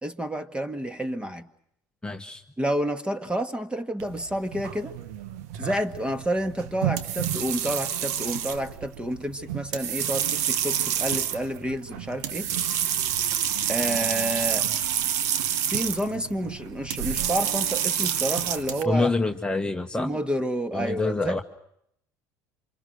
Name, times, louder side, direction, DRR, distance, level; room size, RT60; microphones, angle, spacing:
voice 1, 0.0-1.5 2.6-4.9 5.6-12.5 13.7-14.7 15.7-19.1 20.0-21.4, right 1 dB, 10° right, 1.8 m, -29 dB
voice 2, 2.0-2.4 18.8-20.1 20.7-21.4, left 3 dB, 10° left, 1.3 m, -26 dB
sound 1, 4.0-18.8, right 10 dB, 80° right, 1.2 m, -28 dB
28.5 x 26.0 x 6.6 m
hypercardioid pair, 80°, 9 cm